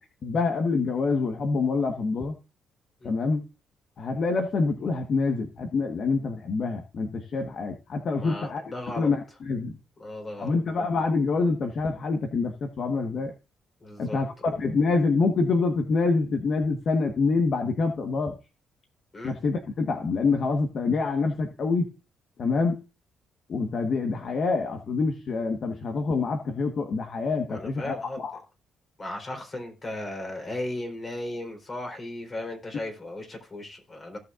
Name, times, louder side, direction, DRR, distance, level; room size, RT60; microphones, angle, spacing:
voice 1, 0.2-2.4 3.0-3.4 4.0-8.6 9.0-9.7 10.4-13.3 14.0-18.4 19.2-21.9 22.4-22.8 23.5-28.4, left 4 dB, 55° left, 5 dB, 1.3 m, -26 dB
voice 2, 8.2-9.1 10.0-10.5 13.8-14.2 19.1-19.4 27.5-28.2 29.0-34.2, left 1 dB, 35° left, 3 dB, 3.8 m, -36 dB
16.5 x 6.6 x 2.5 m, 0.30 s
cardioid pair, 90°, 0 cm